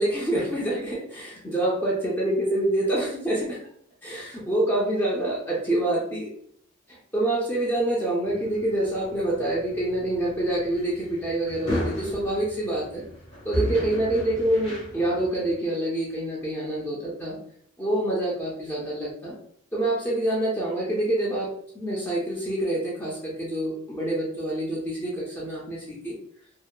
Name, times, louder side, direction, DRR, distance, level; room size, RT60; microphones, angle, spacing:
voice 1, 0.0-3.7 4.0-6.3 6.9-13.0 13.4-17.4 17.8-19.4 19.7-26.2, right 1 dB, 10° left, -5 dB, 0.4 m, -26 dB
sound 1, 8.2-15.6, equal, 30° left, 0.9 m, -35 dB
2.7 x 2.1 x 2.2 m, 0.65 s
head